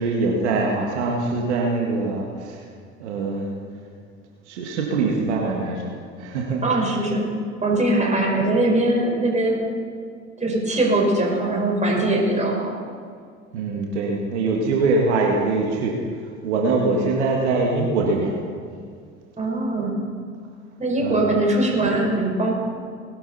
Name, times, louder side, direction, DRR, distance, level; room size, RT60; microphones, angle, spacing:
voice 1, 0.0-2.6 3.0-3.5 4.5-5.9 6.2-6.6 13.5-16.0 16.4-18.4 21.0-21.3, right 3 dB, 75° right, -1 dB, 1.8 m, -23 dB
voice 2, 6.6-7.4 7.6-9.7 10.4-12.8 19.4-20.0 20.8-22.5, right 2 dB, 20° right, -1 dB, 4.9 m, -21 dB
20.0 x 13.0 x 4.2 m, 2.1 s
hypercardioid pair, 70°, 35 cm